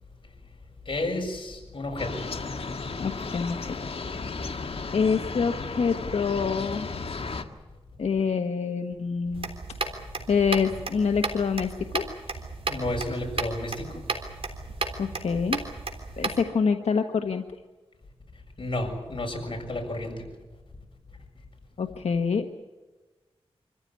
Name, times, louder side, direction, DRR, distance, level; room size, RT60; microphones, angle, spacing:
voice 1, 0.9-2.2 12.7-13.9 18.6-20.2, left 1 dB, 50° left, 2 dB, 6.9 m, -31 dB
sound 1, 2.0-7.4, left 4 dB, 65° left, 1.8 m, -34 dB
voice 2, 3.0-3.7 4.9-6.9 8.0-9.5 10.3-12.0 15.0-15.6 16.2-17.4 21.8-22.5, left 5 dB, 85° left, 5 dB, 1.2 m, -26 dB
sound 2, 9.3-16.4, right 3 dB, 65° right, 3.6 m, -34 dB
26.0 x 15.0 x 9.7 m, 1.2 s
wide cardioid pair, 65°, 11 cm